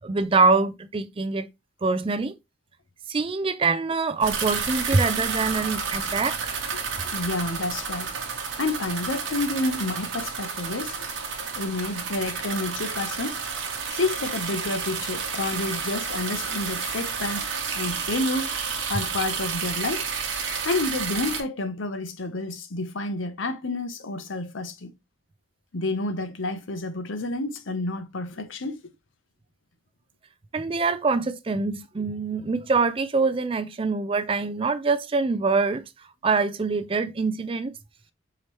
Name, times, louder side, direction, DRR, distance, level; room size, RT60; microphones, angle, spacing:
voice 1, 0.0-1.5 1.8-2.3 3.1-6.5 30.5-35.8 36.2-37.7, right 4 dB, 30° right, 0.4 m, -24 dB
sound 1, 4.2-21.4, right 6 dB, 85° right, 1.1 m, -31 dB
voice 2, 7.1-8.1 8.6-11.1 11.6-13.4 13.9-17.4 17.7-18.5 18.9-20.1 20.6-24.9 25.7-28.8, left 2 dB, 85° left, 0.8 m, -29 dB
4.9 x 2.9 x 3.0 m
head